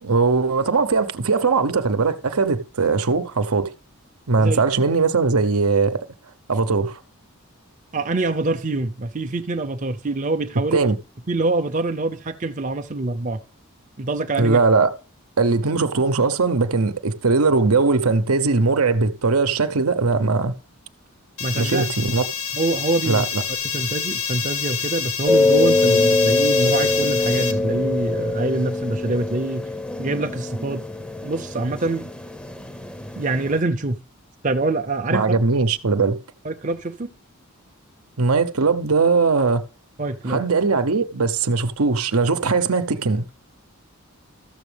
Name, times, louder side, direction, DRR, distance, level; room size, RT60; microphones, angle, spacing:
voice 1, 0.0-3.7 4.3-6.0 6.5-7.0 10.7-11.0 14.4-14.9 15.4-20.6 21.5-22.2 23.0-23.4 35.1-36.2 38.2-39.6 40.3-43.2, right 4 dB, 85° right, 0.9 m, -20 dB
voice 2, 7.9-10.8 11.3-13.4 14.0-14.6 21.4-21.9 22.5-23.3 23.6-29.7 30.0-30.9 31.2-32.1 33.2-34.0 34.4-35.4 36.4-37.1 40.0-40.5, right 2 dB, 35° right, 0.6 m, -25 dB
sound 1, 21.4-27.5, left 7 dB, 85° left, 1.5 m, -27 dB
sound 2, 25.3-33.6, left 3 dB, 5° left, 0.6 m, -23 dB
13.5 x 7.1 x 3.4 m
head